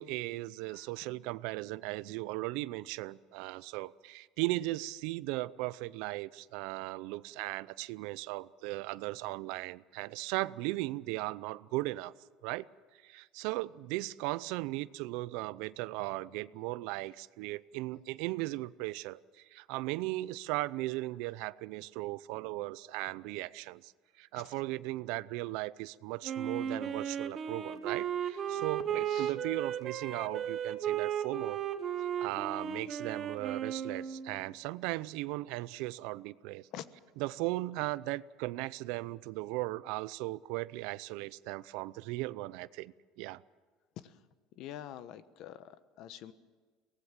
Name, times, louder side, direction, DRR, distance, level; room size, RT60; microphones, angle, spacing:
voice 1, 0.0-12.1 12.4-12.7 13.0-23.9 24.2-31.6 32.2-36.7 37.2-43.4, right 19 dB, 75° right, 19 dB, 0.5 m, -37 dB
Wind instrument woodwind instrument, 26.2-34.4, right 9 dB, 35° right, 1.4 m, -35 dB
voice 2, 28.9-29.3 36.7-36.8 44.0-44.1 44.6-46.3, left 11 dB, 55° left, 13 dB, 1.1 m, -46 dB
23.5 x 18.0 x 7.4 m, 1.5 s
cardioid pair, 135°, 0 cm